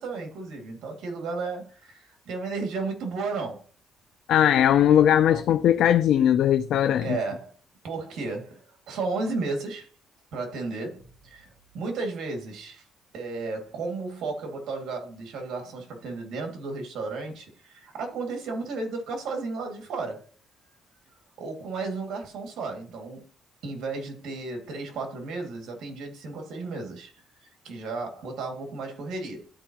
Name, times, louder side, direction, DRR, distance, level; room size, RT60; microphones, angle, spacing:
voice 1, 0.0-3.7 5.3-5.4 7.0-7.5 7.8-9.9 10.3-11.5 11.7-12.8 13.1-20.3 21.4-23.3 23.6-27.1 27.6-29.5, right 3 dB, 75° right, 2.1 m, -33 dB
voice 2, 4.3-7.2, left 10 dB, 75° left, 0.4 m, -19 dB
13.0 x 4.5 x 2.9 m
cardioid pair, 110°, 0 cm